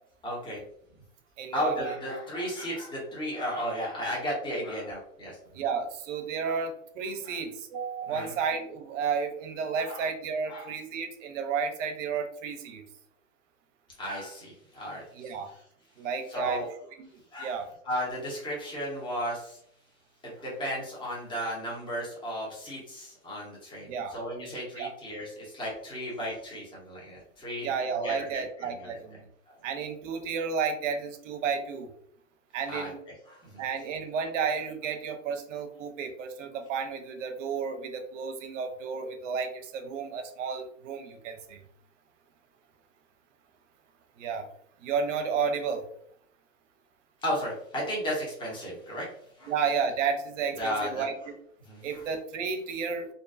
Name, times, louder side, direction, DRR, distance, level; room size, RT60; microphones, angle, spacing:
voice 1, 0.2-0.6 1.5-5.4 6.4-6.6 7.3-7.4 8.1-8.3 9.7-10.0 10.5-10.7 14.0-15.0 16.3-16.7 17.3-17.5 17.8-19.6 20.2-27.7 28.0-28.9 32.7-32.9 33.3-33.6 47.2-49.1 49.4-49.5 50.6-51.0 51.7-51.8, equal, 10° left, -4 dB, 0.8 m, -34 dB
voice 2, 1.4-2.0 5.5-12.8 15.1-15.5 16.0-16.6 17.0-17.1 17.4-17.7 23.9-24.2 24.8-24.9 27.6-29.2 29.6-31.9 32.5-33.0 33.6-41.6 44.2-44.5 44.8-45.9 49.5-51.3 51.8-53.1, right 6 dB, 65° right, 7 dB, 0.6 m, -32 dB
2.5 x 2.2 x 2.4 m, 0.68 s
hypercardioid pair, 120°, 41 cm